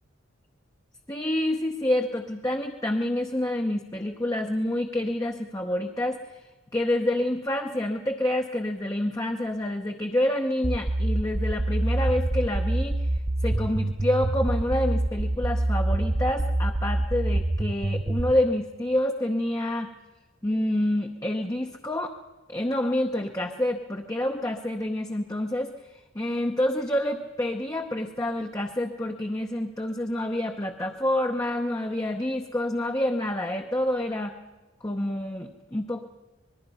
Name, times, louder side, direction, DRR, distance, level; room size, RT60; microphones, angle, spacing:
voice 1, 1.1-6.4 6.7-19.9 20.4-22.2 22.5-25.7 26.1-34.3 34.8-36.1, left 1 dB, 15° left, 3 dB, 0.8 m, -28 dB
sound 1, 10.6-18.3, right 1 dB, 20° right, 0.6 m, -25 dB
25.5 x 20.0 x 5.5 m, 1.2 s
head